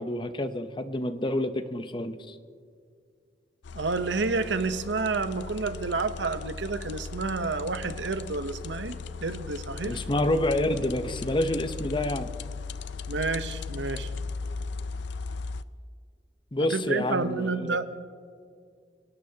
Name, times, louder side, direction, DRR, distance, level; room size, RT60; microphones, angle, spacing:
voice 1, 0.0-2.3 9.9-12.3 16.5-17.8, left 1 dB, 30° left, 10 dB, 0.8 m, -28 dB
sound 1, 3.6-15.6, left 4 dB, 75° left, 0.4 m, -37 dB
voice 2, 3.7-10.0 13.1-14.1 16.6-17.9, right 3 dB, 85° right, 10 dB, 0.9 m, -30 dB
28.5 x 18.0 x 2.8 m, 2.1 s
head